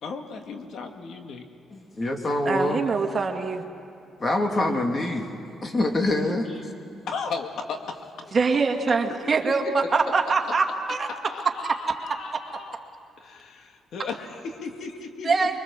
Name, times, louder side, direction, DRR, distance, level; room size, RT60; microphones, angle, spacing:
voice 1, 0.0-1.4 2.5-2.6 7.1-8.4 9.0-9.3 11.3-12.8 13.2-15.6, left 4 dB, 70° left, 5 dB, 1.9 m, -36 dB
voice 2, 1.7-2.8 4.2-5.3 5.6-6.7, left 1 dB, 30° left, 3 dB, 2.9 m, -25 dB
voice 3, 2.5-3.6 8.3-11.1 15.2-15.6, right 4 dB, 40° right, 3 dB, 2.1 m, -23 dB
24.5 x 23.0 x 7.4 m, 2.7 s
cardioid pair, 90°, 0 cm